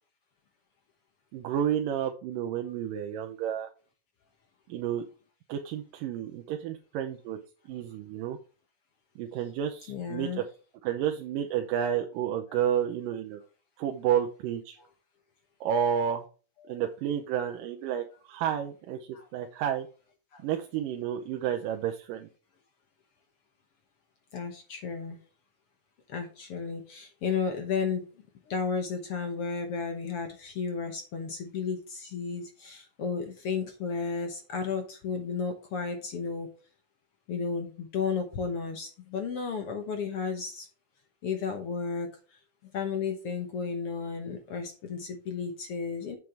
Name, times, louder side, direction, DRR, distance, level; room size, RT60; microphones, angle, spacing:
voice 1, 1.3-3.7 4.7-5.1 5.5-7.4 7.7-8.4 9.2-10.4 10.8-13.4 13.8-14.8 15.6-16.3 16.7-19.9 20.4-22.3, right 9 dB, 80° right, 3 dB, 2.4 m, -30 dB
voice 2, 9.9-10.4 14.8-14.9 16.6-16.8 19.1-19.3 20.3-20.4 24.3-25.2 26.1-28.0 28.5-36.5 37.3-40.7 41.2-46.2, left 5 dB, 65° left, 6 dB, 1.5 m, -33 dB
7.8 x 7.4 x 3.3 m, 0.37 s
omnidirectional pair, 3.9 m